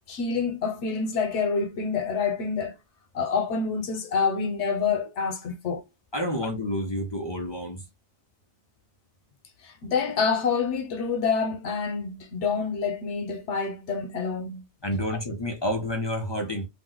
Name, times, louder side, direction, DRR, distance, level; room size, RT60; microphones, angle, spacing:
voice 1, 0.1-2.7 3.1-5.8 9.6-14.6, left 5 dB, 90° left, 1.1 m, -27 dB
voice 2, 6.1-7.8 14.8-16.7, equal, 35° left, 0.4 m, -29 dB
2.7 x 2.0 x 3.7 m
omnidirectional pair, 1.2 m